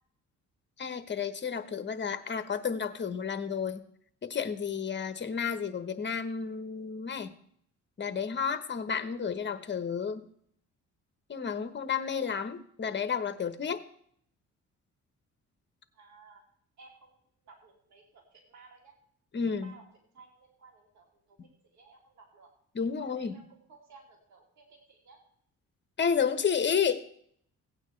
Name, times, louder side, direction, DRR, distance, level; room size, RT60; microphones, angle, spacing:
voice 1, 0.8-3.8 4.2-7.3 8.0-10.3 11.3-13.8 19.3-19.7 22.7-23.4 26.0-27.0, left 6 dB, 35° left, 10 dB, 1.1 m, -31 dB
voice 2, 15.9-16.4 16.8-17.1 17.4-18.9 19.6-19.8 20.1-22.5 23.0-25.2, right 4 dB, 65° right, 1 dB, 2.5 m, -57 dB
17.0 x 9.0 x 3.3 m, 0.65 s
cardioid pair, 90°, 30 cm